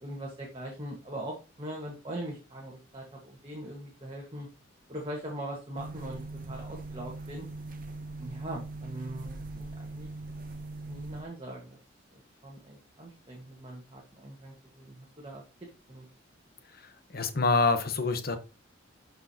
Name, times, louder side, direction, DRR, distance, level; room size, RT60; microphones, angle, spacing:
voice 1, 0.0-4.5 4.9-7.4 8.2-10.1 10.9-11.8 12.4-15.4 15.9-16.1, right 1 dB, 25° right, 1.4 m, -41 dB
sound 1, 5.8-11.2, right 2 dB, 45° right, 0.7 m, -41 dB
voice 2, 17.1-18.4, left 3 dB, 50° left, 1.0 m, -26 dB
12.0 x 4.7 x 2.8 m
head